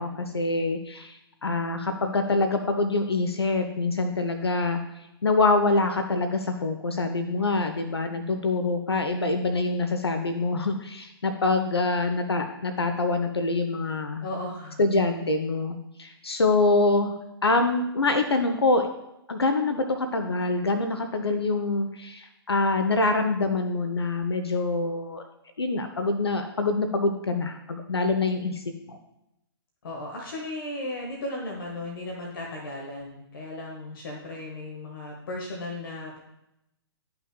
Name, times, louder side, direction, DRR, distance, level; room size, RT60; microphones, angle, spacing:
voice 1, 0.0-4.8 5.2-14.3 14.8-17.1 17.4-18.9 19.3-25.2 25.6-29.0, left 3 dB, 75° left, 7 dB, 0.6 m, -25 dB
voice 2, 14.2-14.8 29.8-36.2, left 1 dB, 55° left, -1 dB, 1.4 m, -36 dB
11.5 x 5.7 x 2.2 m, 0.86 s
figure-of-eight pair, 120°, 13 cm